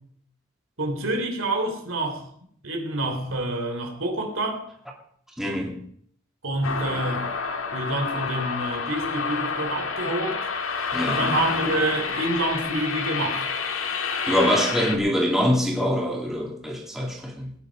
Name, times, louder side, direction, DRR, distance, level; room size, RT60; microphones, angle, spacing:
voice 1, 0.8-2.3 2.6-4.6 6.4-7.3 7.7-10.5 11.1-13.6, right 2 dB, 70° right, 3 dB, 3.5 m, -27 dB
voice 2, 5.4-5.7 10.9-11.2 14.3-17.5, equal, ahead, -1 dB, 2.5 m, -24 dB
sound 1, 6.6-15.0, left 5 dB, 80° left, 1.7 m, -28 dB
19.0 x 10.0 x 5.3 m, 0.64 s
head